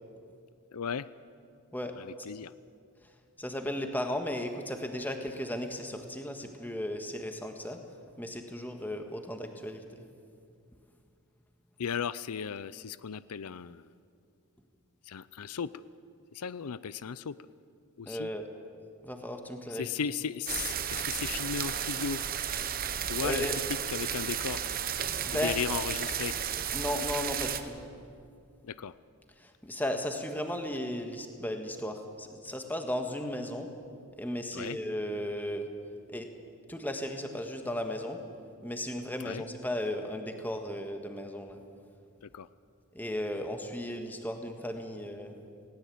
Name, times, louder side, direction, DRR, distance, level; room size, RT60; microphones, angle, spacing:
voice 1, 0.7-1.1 1.9-2.5 11.8-13.9 15.1-15.7 16.3-17.4 18.0-18.3 19.7-22.2 23.1-24.6 25.4-26.4 28.6-28.9 34.5-34.8 39.2-39.4 42.3-42.5, left 6 dB, 85° left, 17 dB, 0.5 m, -36 dB
voice 2, 3.4-7.8 8.2-10.1 18.1-18.5 19.0-19.9 22.9-23.6 25.2-25.6 26.7-27.8 29.4-33.7 34.2-35.7 36.1-36.3 36.7-38.2 38.6-41.6 42.9-45.4, left 1 dB, 10° left, 5 dB, 1.5 m, -35 dB
sound 1, 20.5-27.6, right 8 dB, 40° right, 1.0 m, -33 dB
19.5 x 18.0 x 8.5 m, 2.3 s
head